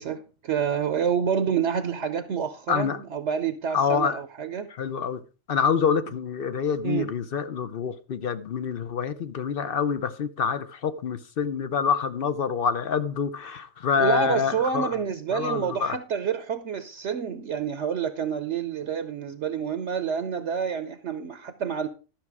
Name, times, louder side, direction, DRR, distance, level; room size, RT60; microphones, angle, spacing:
voice 1, 0.0-4.7 6.8-7.1 14.0-21.9, right 7 dB, 65° right, 1.0 m, -28 dB
voice 2, 2.7-3.0 3.7-4.2 4.8-5.2 5.5-15.0 15.3-16.0, left 6 dB, 55° left, 0.7 m, -26 dB
12.0 x 6.0 x 4.7 m
omnidirectional pair, 1.4 m